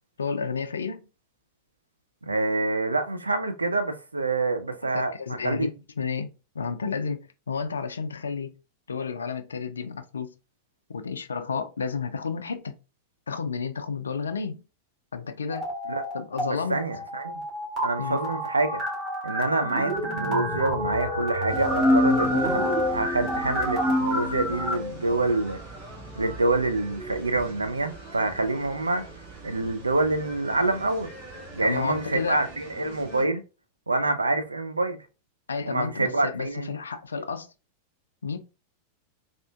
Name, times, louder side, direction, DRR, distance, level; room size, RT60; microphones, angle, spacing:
voice 1, 0.2-1.0 4.9-8.5 8.9-10.3 10.9-12.8 13.3-14.6 15.1-15.7 16.1-16.8 18.0-18.2 31.6-32.4 35.5-37.5 38.2-38.4, left 5 dB, 70° left, 0.3 m, -31 dB
voice 2, 2.2-5.7 15.9-16.0 16.4-17.3 17.8-18.8 19.2-25.6 26.2-29.0 29.4-31.1 31.5-33.4 33.9-35.0 35.7-36.7, right 2 dB, 80° right, 0.4 m, -26 dB
sound 1, 15.5-16.5 16.7-24.7, right 1 dB, 35° right, 1.6 m, -30 dB
sound 2, 21.5-25.0, left 2 dB, 5° right, 0.4 m, -26 dB
sound 3, 21.5-33.3, right 2 dB, 55° right, 1.6 m, -42 dB
3.5 x 2.4 x 2.3 m
figure-of-eight pair, 90°, 0 cm